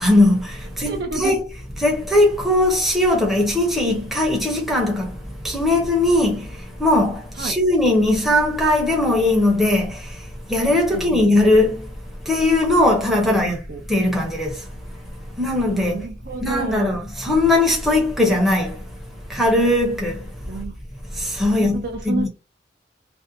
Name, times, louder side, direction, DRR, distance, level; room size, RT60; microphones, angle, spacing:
voice 1, 0.0-1.4 1.8-5.2 5.4-6.5 6.8-10.1 10.5-11.8 12.3-13.6 13.9-14.6 15.4-16.0 16.4-18.8 19.3-20.2 21.2-22.3, left 1 dB, ahead, 0.6 m, -19 dB
voice 2, 0.9-1.4 7.4-7.6 10.9-11.3 13.2-13.8 15.7-17.0 20.5-20.8 21.5-22.3, right 4 dB, 55° right, 0.4 m, -30 dB
2.5 x 2.1 x 2.6 m
head